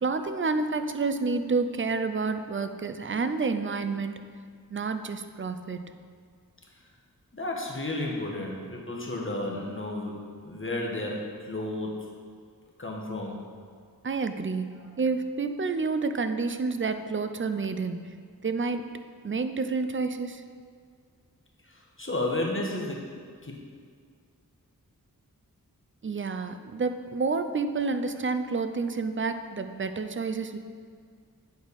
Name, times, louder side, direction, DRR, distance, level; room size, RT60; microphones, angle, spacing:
voice 1, 0.0-4.1 4.7-5.8 14.0-14.7 15.0-18.0 18.4-18.9 19.2-20.4 26.0-30.6, right 4 dB, 35° right, 9 dB, 0.4 m, -29 dB
voice 2, 7.3-10.2 10.4-12.1 12.8-13.4 14.7-14.9 21.6-23.1 23.4-23.5, left 1 dB, 35° left, -1 dB, 1.2 m, -32 dB
8.3 x 4.7 x 4.1 m, 2.1 s
wide cardioid pair, 45°, 36 cm